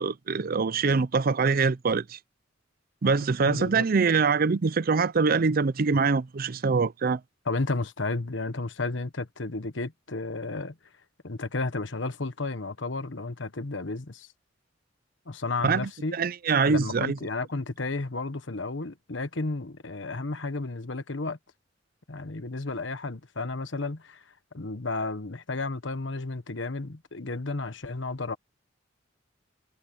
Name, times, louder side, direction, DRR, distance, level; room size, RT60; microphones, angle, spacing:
voice 1, 0.0-2.2 3.0-7.2 15.6-17.2, right 4 dB, 50° right, 0.5 m, -24 dB
voice 2, 3.4-3.9 7.4-10.7 11.2-14.3 15.3-16.2 16.7-21.4 22.1-24.2 24.5-28.4, left 3 dB, 70° left, 1.3 m, -32 dB
head